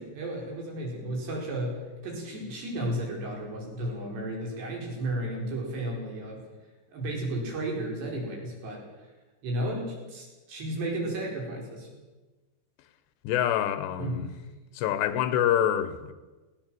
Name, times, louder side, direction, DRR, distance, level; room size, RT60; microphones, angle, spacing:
voice 1, 0.0-6.5 6.9-8.8 9.4-11.9 14.0-14.2, right 1 dB, 70° right, 7.0 m, -33 dB
voice 2, 13.2-14.3 14.7-16.1, left 10 dB, 80° left, 3.1 m, -26 dB
19.5 x 17.5 x 7.7 m
omnidirectional pair, 5.1 m